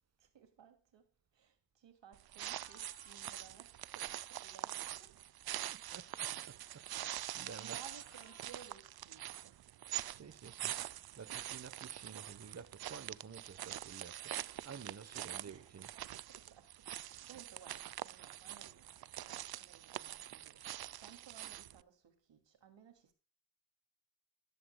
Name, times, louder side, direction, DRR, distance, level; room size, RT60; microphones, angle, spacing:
voice 1, 0.2-5.2 7.1-9.6 14.4-14.6 15.5-23.1, right 8 dB, 80° right, 2.6 m, -60 dB
sound 1, 2.1-21.8, right 12 dB, 60° right, 0.5 m, -45 dB
sound 2, 2.5-3.3 7.3-8.7, left 7 dB, 80° left, 2.1 m, -64 dB
voice 2, 5.7-7.8 10.1-10.8 11.2-14.4 14.6-15.9, right 6 dB, 35° right, 1.1 m, -52 dB
13.0 x 11.5 x 2.3 m
cardioid pair, 85°, 43 cm